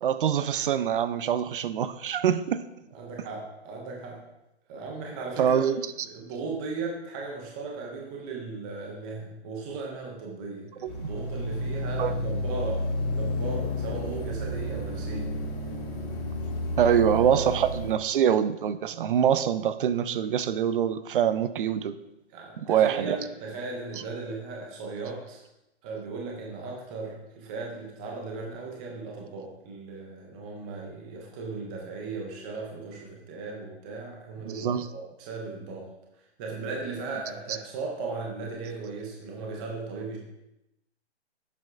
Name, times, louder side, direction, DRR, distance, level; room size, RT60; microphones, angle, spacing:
voice 1, 0.0-2.6 5.4-5.8 10.8-10.9 12.0-12.1 16.8-22.0 22.7-23.2 34.5-34.9, right 9 dB, 50° right, 13 dB, 0.6 m, -24 dB
voice 2, 2.9-4.2 4.7-5.7 6.0-12.8 13.1-15.3 22.3-25.4 25.8-35.9 36.4-40.2, right 3 dB, 5° right, -1 dB, 0.3 m, -37 dB
sound 1, 10.9-17.9, left 1 dB, 35° left, 2.6 m, -31 dB
11.0 x 7.7 x 2.5 m, 0.90 s
hypercardioid pair, 140°, 34 cm